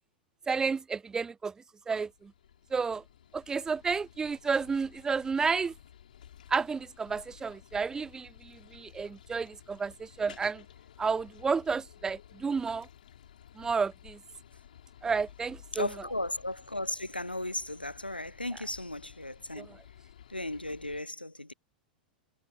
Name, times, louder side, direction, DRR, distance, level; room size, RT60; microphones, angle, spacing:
voice 1, 0.5-1.5 1.9-2.3 2.7-3.0 3.3-5.7 6.5-10.6 11.0-12.9 13.6-14.2 15.0-15.9 19.6-19.8, right 5 dB, 10° right, 0.4 m, -31 dB
sound 1, 1.8-21.0, left 10 dB, 60° left, 7.1 m, -55 dB
voice 2, 15.7-19.7 20.3-21.5, left 1 dB, 90° left, 0.5 m, -36 dB
figure-of-eight pair, 95°, 5 cm